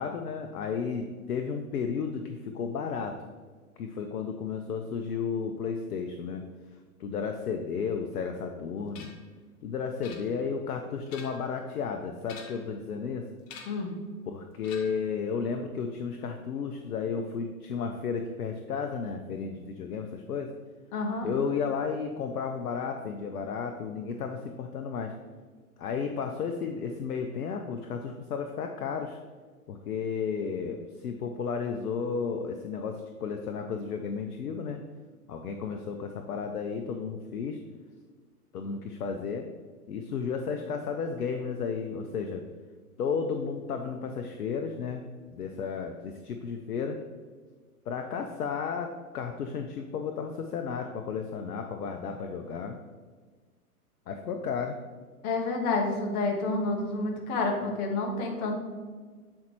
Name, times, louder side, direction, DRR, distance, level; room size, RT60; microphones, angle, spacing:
voice 1, 0.0-3.2 3.8-6.4 7.0-9.1 9.6-13.3 14.3-20.5 21.2-25.1 25.8-29.2 29.7-34.8 35.3-37.6 38.5-39.5 39.9-42.4 43.0-47.0 47.9-52.8 54.1-54.8, left 6 dB, 75° left, 5 dB, 0.6 m, -33 dB
sound 1, 8.9-9.3 10.0-10.6 11.0-11.5 12.2-12.8 13.5-13.9 14.6-15.1, left 5 dB, 20° left, 0.4 m, -47 dB
voice 2, 13.7-14.0 20.9-21.3 55.2-58.5, left 3 dB, 35° left, 1 dB, 1.2 m, -29 dB
7.4 x 4.3 x 3.0 m, 1.5 s
hypercardioid pair, 110°, 46 cm